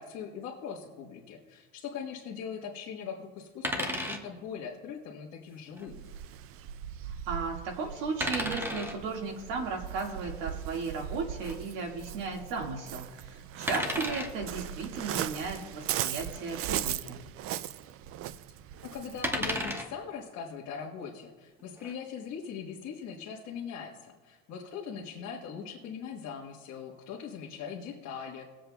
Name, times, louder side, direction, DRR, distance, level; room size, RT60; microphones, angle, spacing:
voice 1, 0.0-6.1 18.9-28.4, left 6 dB, 60° left, -2 dB, 1.4 m, -41 dB
sound 1, 3.6-4.2 5.7-5.9 8.2-9.0 11.4-11.5 13.7-14.3 16.3-16.4 16.7-16.8 19.2-19.9 21.6-21.9, equal, 5° right, 1.1 m, -33 dB
Waves surf, 5.9-19.7, right 11 dB, 45° right, 0.4 m, -39 dB
voice 2, 7.1-17.2, right 4 dB, 75° right, 1 dB, 1.9 m, -35 dB
21.0 x 7.7 x 2.3 m, 1.5 s
cardioid pair, 140°, 31 cm